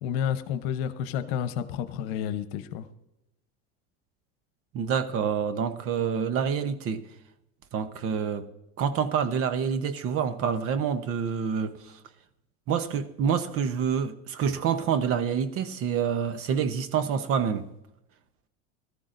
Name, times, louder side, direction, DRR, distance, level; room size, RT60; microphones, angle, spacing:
voice 1, 0.0-2.9, left 9 dB, 70° left, 1.0 m, -30 dB
voice 2, 4.7-7.0 7.7-8.5 8.8-12.0 12.7-17.7, right 7 dB, 45° right, 0.9 m, -27 dB
18.0 x 13.5 x 2.6 m
supercardioid pair, 135°, 32 cm